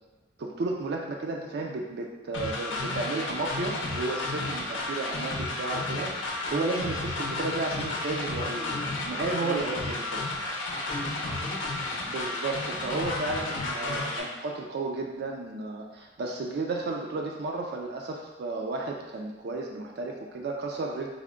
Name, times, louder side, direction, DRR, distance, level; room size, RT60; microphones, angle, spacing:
voice 1, 0.4-10.2 12.1-21.1, right 3 dB, 55° right, 0 dB, 0.4 m, -33 dB
sound 1, 2.3-14.2, left 2 dB, 85° left, 0.6 m, -32 dB
voice 2, 5.4-5.7 8.4-9.9 10.7-12.1 13.8-14.3, left 1 dB, 25° left, -2 dB, 0.5 m, -42 dB
3.5 x 2.1 x 3.6 m, 1.1 s
head